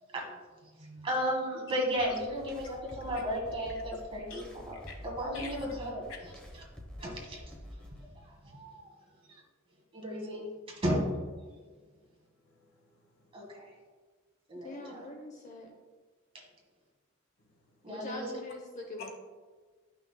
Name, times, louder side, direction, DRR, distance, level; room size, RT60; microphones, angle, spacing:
voice 1, 0.1-4.8 5.0-6.0 7.0-7.4 8.1-8.9 9.3-9.4 9.9-11.3 13.3-13.7 14.5-15.0 16.3-16.4 17.8-18.3, equal, 25° right, -1 dB, 1.7 m, -34 dB
sound 1, 2.0-8.0, equal, 5° left, 1.0 m, -48 dB
voice 2, 5.3-5.7 6.1-6.5 12.4-13.3 17.7-17.8 19.0-19.1, left 5 dB, 65° left, 1 dB, 1.3 m, -48 dB
voice 3, 14.5-15.7 17.9-19.1, left 2 dB, 35° left, 2 dB, 0.7 m, -43 dB
11.5 x 5.8 x 2.2 m, 1.4 s
head